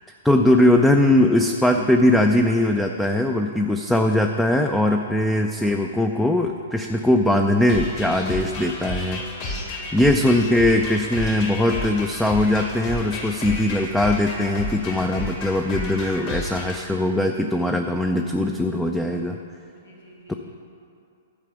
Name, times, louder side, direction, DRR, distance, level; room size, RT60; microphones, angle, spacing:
voice 1, 0.2-9.2 9.9-19.4 20.3-20.4, left 1 dB, 5° left, 4 dB, 0.4 m, -20 dB
sound 1, 7.7-16.8, left 1 dB, 40° left, 2.2 m, -31 dB
voice 2, 9.2-10.3 19.8-20.3, left 1 dB, 85° left, -3 dB, 2.3 m, -48 dB
11.5 x 4.8 x 6.9 m, 2.6 s
hypercardioid pair, 115°, 0 cm